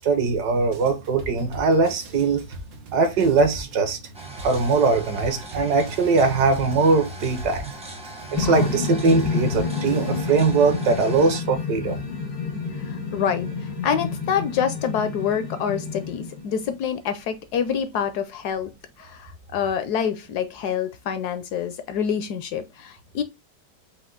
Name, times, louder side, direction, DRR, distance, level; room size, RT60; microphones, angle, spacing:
voice 1, 0.0-2.4 2.9-4.0 4.4-7.6 8.3-12.0, right 4 dB, 65° right, 1.4 m, -21 dB
sound 1, 0.7-10.5, right 2 dB, 85° right, 1.8 m, -41 dB
sound 2, 4.1-11.4, right 1 dB, 5° right, 0.5 m, -41 dB
sound 3, 8.3-16.8, left 5 dB, 90° left, 2.3 m, -29 dB
voice 2, 8.4-8.8 12.8-18.7 19.0-23.2, left 8 dB, 70° left, 1.0 m, -27 dB
5.2 x 2.6 x 3.7 m
omnidirectional pair, 1.9 m